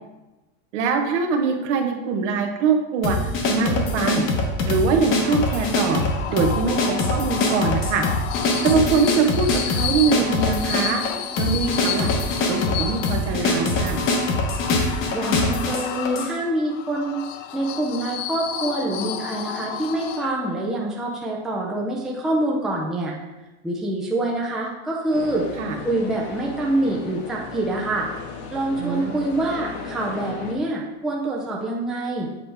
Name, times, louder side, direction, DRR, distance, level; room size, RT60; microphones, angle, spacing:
voice 1, 0.7-4.2 4.7-6.0 6.3-8.0 8.6-11.0 11.4-12.1 12.5-14.0 25.6-25.8 28.8-29.1, right 5 dB, 70° right, 4 dB, 1.0 m, -23 dB
sound 1, 3.0-16.3, left 2 dB, 35° left, 0.9 m, -23 dB
sound 2, 4.9-20.6, left 9 dB, 80° left, 0.6 m, -32 dB
voice 2, 15.1-17.1 17.5-23.1 23.6-25.5 25.8-28.1 28.5-32.3, right 1 dB, ahead, -3 dB, 0.4 m, -25 dB
sound 3, 25.1-30.5, left 4 dB, 60° left, 1.1 m, -36 dB
7.7 x 4.4 x 3.4 m, 1.1 s
supercardioid pair, 150°, 37 cm